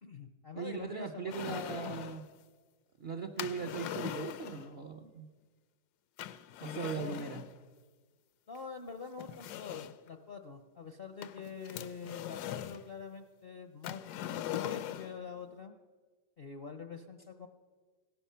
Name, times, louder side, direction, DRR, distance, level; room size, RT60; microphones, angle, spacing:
voice 1, 0.0-1.9 6.6-7.2 8.5-14.0 14.5-15.7 16.4-17.5, left 5 dB, 55° left, 7 dB, 0.6 m, -45 dB
voice 2, 0.6-2.2 3.0-5.3 6.6-7.4, right 5 dB, 55° right, 7 dB, 0.7 m, -39 dB
sound 1, 1.3-2.3 3.4-4.7 6.2-7.5 8.5-8.6 9.2-10.1 11.2-12.8 13.8-15.2, left 11 dB, 75° left, 1.1 m, -41 dB
16.5 x 12.5 x 5.6 m, 1.4 s
omnidirectional pair, 1.9 m